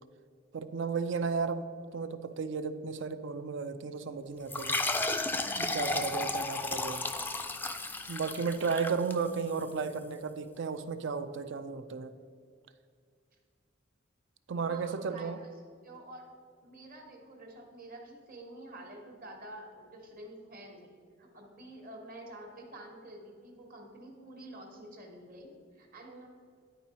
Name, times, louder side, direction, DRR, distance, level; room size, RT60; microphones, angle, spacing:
voice 1, 0.5-1.7 1.9-4.9 5.6-7.0 8.1-12.1 14.5-15.4, right 5 dB, 65° right, 11 dB, 0.5 m, -34 dB
sound 1, 4.5-9.6, left 2 dB, 10° left, 0.3 m, -33 dB
voice 2, 14.6-15.5 15.8-16.3 16.6-26.3, right 1 dB, 50° right, 2 dB, 1.3 m, -48 dB
10.5 x 4.6 x 4.2 m, 2.2 s
head